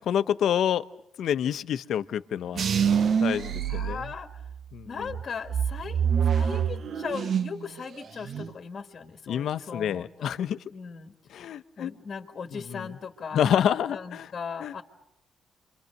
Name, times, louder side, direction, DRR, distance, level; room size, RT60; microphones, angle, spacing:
voice 1, 0.1-0.8 1.2-2.6 3.2-4.0 4.7-4.9 9.3-10.6 11.3-11.9 12.5-12.9 13.3-14.3 14.6-14.7, left 9 dB, 70° left, 13 dB, 0.9 m, -27 dB
sound 1, 2.6-4.6 5.1-7.6 7.9-8.5, right 7 dB, 55° right, 1.0 m, -26 dB
voice 2, 3.7-4.3 4.9-10.4 10.7-11.1 11.8-13.4 13.9-14.8, left 6 dB, 45° left, 7 dB, 1.7 m, -38 dB
28.5 x 25.0 x 6.6 m, 0.77 s
cardioid pair, 90°, 0 cm